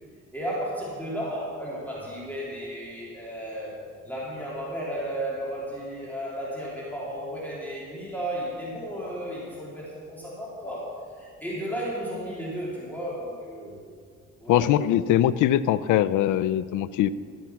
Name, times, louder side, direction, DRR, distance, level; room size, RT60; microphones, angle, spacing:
voice 1, 0.3-3.7 4.0-13.9 14.4-14.7, equal, 5° left, -6 dB, 3.1 m, -34 dB
voice 2, 14.5-17.1, left 12 dB, 80° left, 16 dB, 0.5 m, -22 dB
13.5 x 7.3 x 5.8 m, 2.1 s
cardioid pair, 90°, 30 cm